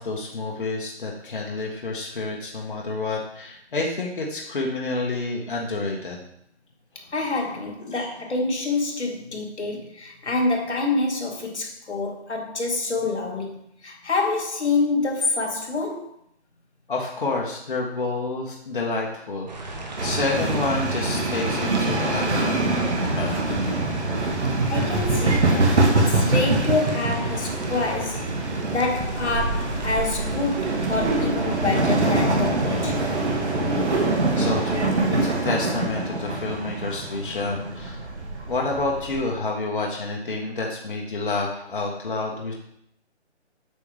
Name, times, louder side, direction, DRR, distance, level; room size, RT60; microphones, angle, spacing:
voice 1, 0.0-6.2 7.9-8.1 16.9-23.9 34.3-38.0 38.4-42.5, left 3 dB, 50° left, 1.5 m, -29 dB
voice 2, 7.0-16.1 24.7-33.1, left 3 dB, 75° left, 1.8 m, -27 dB
sound 1, 19.5-35.0, right 2 dB, 40° right, 1.1 m, -36 dB
sound 2, 20.0-39.2, right 2 dB, 75° right, 1.8 m, -24 dB
8.1 x 6.0 x 3.4 m
hypercardioid pair, 170°, 34 cm